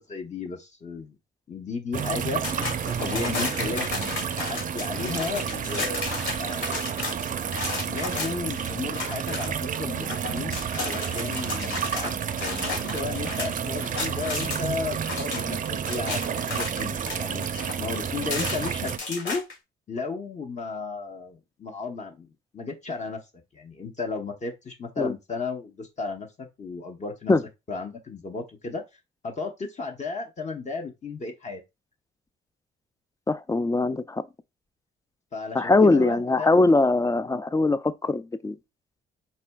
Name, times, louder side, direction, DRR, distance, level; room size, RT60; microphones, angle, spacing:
voice 1, 0.1-1.2 1.5-2.4 3.0-6.9 7.9-16.2 16.5-17.4 17.8-19.4 19.9-23.2 23.5-27.3 27.7-28.8 29.2-31.6 35.3-36.7, left 4 dB, 35° left, 0.9 m, -34 dB
sound 1, 1.9-19.0, right 8 dB, 40° right, 0.5 m, -30 dB
sound 2, 2.4-14.6 14.9-19.5, left 3 dB, 75° left, 2.3 m, -33 dB
voice 2, 33.3-34.2 35.5-38.6, left 2 dB, 15° left, 0.3 m, -21 dB
4.3 x 4.2 x 2.3 m
cardioid pair, 90°, 20 cm